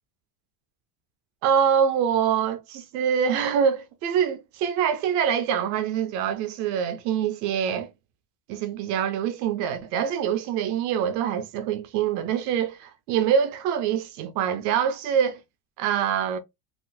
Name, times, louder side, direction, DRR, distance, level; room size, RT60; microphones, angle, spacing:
voice 1, 1.4-7.9 8.5-15.4 15.8-16.4, right 8 dB, 40° right, 0.4 m, -25 dB
4.0 x 2.3 x 2.4 m
cardioid pair, 160°, 48 cm